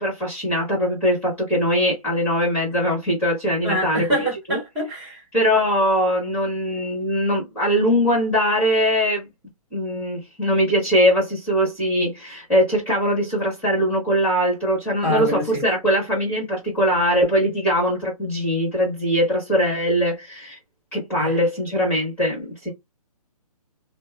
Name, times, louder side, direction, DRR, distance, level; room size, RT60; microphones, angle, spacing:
voice 1, 0.0-4.6 5.3-9.3 9.7-20.6 20.9-22.7, equal, 10° left, 1.4 m, -21 dB
voice 2, 3.6-5.2 15.0-15.6 21.2-21.4, equal, 15° right, 1.7 m, -25 dB
2.9 x 2.0 x 2.3 m
hypercardioid pair, 155°, 19 cm